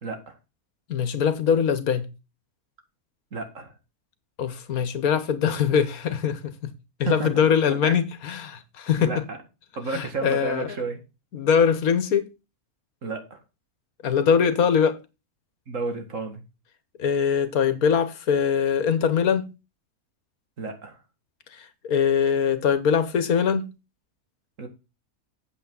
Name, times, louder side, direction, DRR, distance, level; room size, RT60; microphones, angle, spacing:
voice 1, 0.0-0.4 3.3-3.7 7.1-7.3 7.7-7.9 9.0-9.4 9.8-11.0 13.0-13.4 15.7-16.4 20.6-21.0 24.6-24.7, right 3 dB, 60° right, 2.3 m, -31 dB
voice 2, 0.9-2.1 4.4-6.7 7.0-9.2 9.9-10.8 11.3-12.3 14.0-15.0 17.0-19.5 21.5-23.7, left 7 dB, 80° left, 1.6 m, -22 dB
8.4 x 7.9 x 3.8 m
omnidirectional pair, 1.5 m